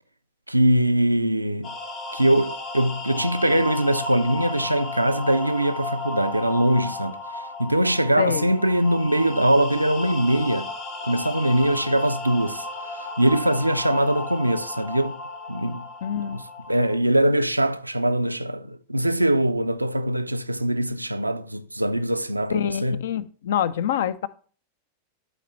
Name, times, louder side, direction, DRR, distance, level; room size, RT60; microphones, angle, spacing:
voice 1, 0.5-1.7 2.1-7.2 7.6-10.7 11.0-12.7 12.9-15.2 15.5-15.9 16.1-16.4 16.7-23.0, right 1 dB, 85° right, 0.4 m, -22 dB
sound 1, 1.6-16.9, left 2 dB, 40° left, 1.3 m, -34 dB
voice 2, 8.2-8.5 16.0-16.4 22.5-24.3, left 9 dB, 60° left, 0.4 m, -26 dB
12.0 x 4.2 x 3.0 m
figure-of-eight pair, 90°, 0 cm